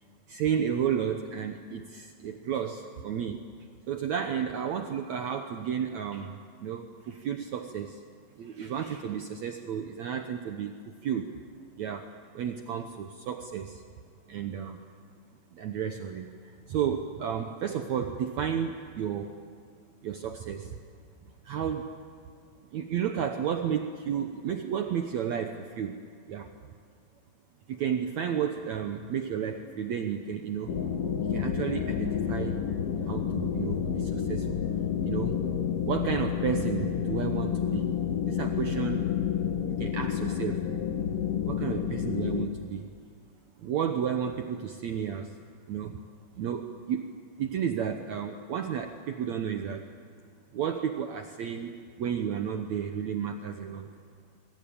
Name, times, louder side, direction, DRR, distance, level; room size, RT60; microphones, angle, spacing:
voice 1, 0.3-3.5 3.8-8.0 8.4-10.8 11.0-11.4 11.8-13.8 14.3-14.8 15.5-19.4 20.0-20.8 21.4-21.9 22.7-26.0 26.3-26.5 27.7-30.8 31.3-32.6 33.0-34.6 35.0-35.4 35.8-37.9 38.2-39.1 39.7-40.7 41.5-42.9 43.6-45.3 45.7-46.0 46.3-47.1 47.4-49.9 50.5-53.9, right 8 dB, 80° right, 5 dB, 1.6 m, -32 dB
sound 1, 30.7-42.5, left 8 dB, 60° left, 1.6 m, -29 dB
27.0 x 22.5 x 8.8 m, 2.1 s
omnidirectional pair, 4.7 m